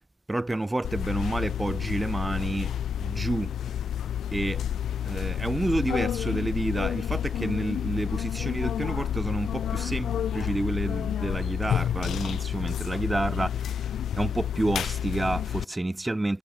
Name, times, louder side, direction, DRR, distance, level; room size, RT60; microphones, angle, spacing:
voice 1, 0.3-2.7 3.0-3.5 4.3-4.6 5.0-13.6 14.1-16.4, right 2 dB, 10° right, 2.1 m, -29 dB
sound 1, 0.8-15.6, left 10 dB, 55° left, 4.0 m, -30 dB
cardioid pair, 100°, 0 cm